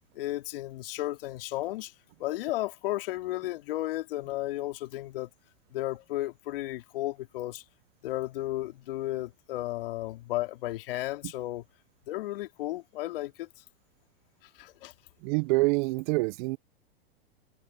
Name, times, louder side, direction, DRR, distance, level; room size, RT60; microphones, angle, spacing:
voice 1, 0.1-1.9 2.2-5.3 5.7-7.6 8.0-11.6 12.1-13.5 14.6-14.9, left 16 dB, 60° left, 3.3 m, -34 dB
voice 2, 15.2-16.6, right 25 dB, 50° right, 1.4 m, -26 dB
hypercardioid pair, 105°, 31 cm